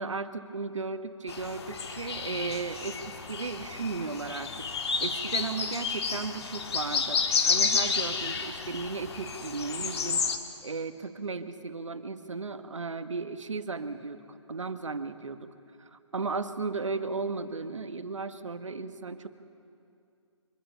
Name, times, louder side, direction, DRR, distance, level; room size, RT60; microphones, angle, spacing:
voice 1, 0.0-4.7 5.0-10.3 10.6-15.5 15.9-19.3, right 4 dB, 75° right, 10 dB, 1.3 m, -35 dB
sound 1, 1.3-10.4, left 5 dB, 55° left, 1.8 m, -31 dB
25.0 x 20.5 x 5.5 m, 2.5 s
figure-of-eight pair, 135°, 16 cm